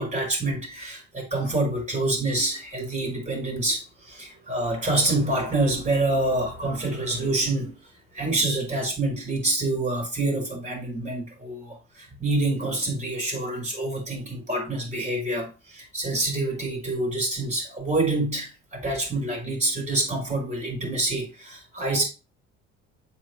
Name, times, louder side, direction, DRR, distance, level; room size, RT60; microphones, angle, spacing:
voice 1, 0.0-7.7 8.1-22.0, right 2 dB, 20° right, 4.3 m, -27 dB
7.6 x 4.4 x 3.2 m
supercardioid pair, 80°, 31 cm